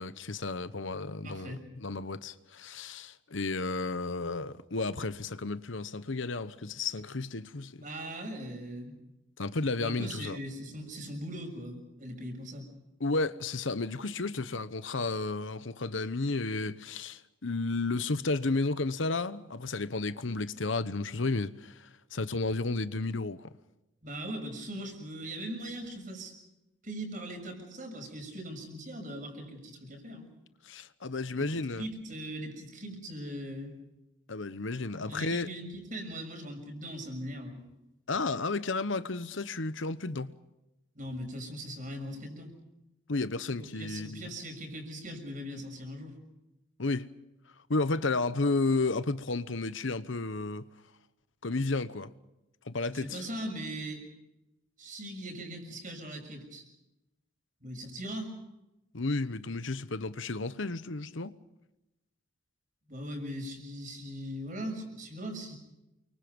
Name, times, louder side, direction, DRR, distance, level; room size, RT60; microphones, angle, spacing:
voice 1, 0.0-7.8 9.4-10.4 13.0-23.5 30.6-31.9 34.3-35.5 38.1-40.4 43.1-44.2 46.8-47.1 47.7-50.7 51.4-52.1 52.7-53.2 58.9-61.4, left 3 dB, 75° left, 1.0 m, -32 dB
voice 2, 1.2-1.6 7.8-8.9 9.8-12.7 24.0-26.3 26.8-30.3 31.4-33.7 35.0-37.6 40.9-42.5 43.6-46.1 52.9-54.1 54.8-56.6 57.6-58.3 62.9-65.6, equal, 40° right, 6.6 m, -40 dB
29.0 x 24.5 x 5.4 m
head